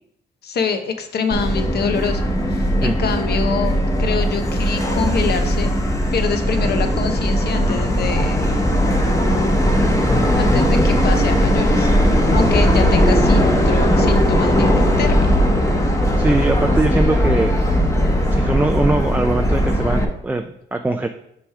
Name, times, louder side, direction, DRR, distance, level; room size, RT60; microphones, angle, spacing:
voice 1, 0.4-3.7 4.0-5.7 6.1-8.5 10.3-11.9 12.3-14.7 15.0-15.3, left 5 dB, 55° left, 7 dB, 0.9 m, -25 dB
Subway metro underground, 1.3-20.0, equal, 15° left, 1.0 m, -18 dB
voice 2, 16.2-17.5 18.3-21.1, right 2 dB, 10° right, 5 dB, 0.4 m, -21 dB
6.0 x 4.9 x 4.8 m, 0.78 s
cardioid pair, 90°, 20 cm